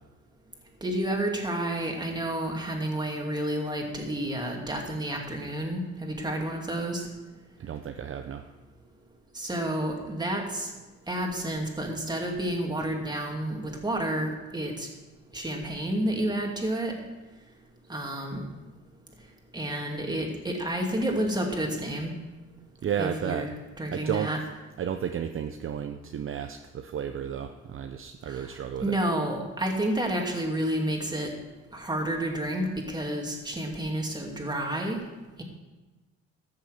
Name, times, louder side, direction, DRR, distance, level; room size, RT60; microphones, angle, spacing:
voice 1, 0.8-7.1 9.3-10.7 11.1-14.9 15.3-16.9 17.9-18.5 19.5-22.1 23.0-23.5 23.8-24.4 28.3-31.3 31.7-35.0, right 1 dB, 15° right, 1 dB, 2.4 m, -30 dB
voice 2, 7.6-8.5 22.8-23.5 23.9-24.3 24.8-28.9, right 8 dB, 45° right, 6 dB, 0.7 m, -32 dB
13.5 x 6.7 x 6.4 m, 1.2 s
cardioid pair, 105°, 30 cm